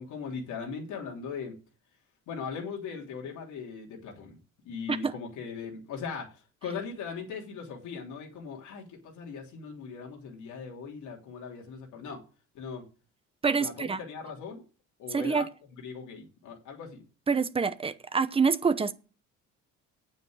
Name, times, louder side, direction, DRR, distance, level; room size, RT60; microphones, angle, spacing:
voice 1, 0.0-1.6 2.3-4.4 4.6-12.2 12.5-12.9 13.6-14.6 15.0-15.5 15.8-17.0, left 5 dB, 80° left, 3.2 m, -39 dB
voice 2, 13.4-14.0 15.1-15.5 17.3-18.9, right 5 dB, 20° right, 0.8 m, -26 dB
9.2 x 7.9 x 6.4 m
cardioid pair, 155°, 30 cm